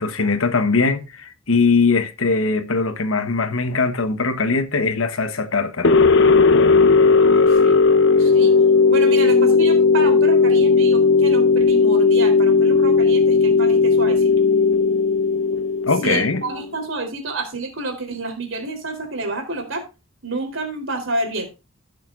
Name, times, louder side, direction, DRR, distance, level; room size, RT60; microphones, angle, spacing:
voice 1, 0.0-6.0 15.9-16.4, left 4 dB, 80° left, 1.2 m, -21 dB
sound 1, 5.8-16.7, left 4 dB, 60° left, 0.8 m, -15 dB
voice 2, 7.2-7.8 8.2-8.5 8.9-14.3 16.0-19.8 20.2-21.5, right 2 dB, 65° right, 3.6 m, -29 dB
17.0 x 6.7 x 2.5 m
head